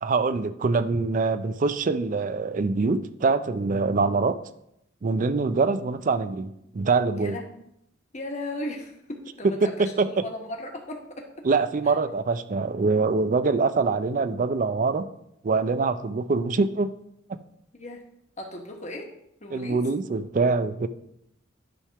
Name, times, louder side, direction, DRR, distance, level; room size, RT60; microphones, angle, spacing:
voice 1, 0.0-4.4 5.0-7.4 9.6-10.2 11.4-15.1 15.4-16.9 17.3-17.4 19.5-20.9, right 4 dB, 40° right, 12 dB, 0.4 m, -24 dB
voice 2, 7.1-7.6 8.1-11.3 17.7-18.0 18.4-19.1 19.4-19.8, left 1 dB, 35° left, 1 dB, 1.2 m, -36 dB
10.0 x 3.5 x 5.7 m, 0.78 s
head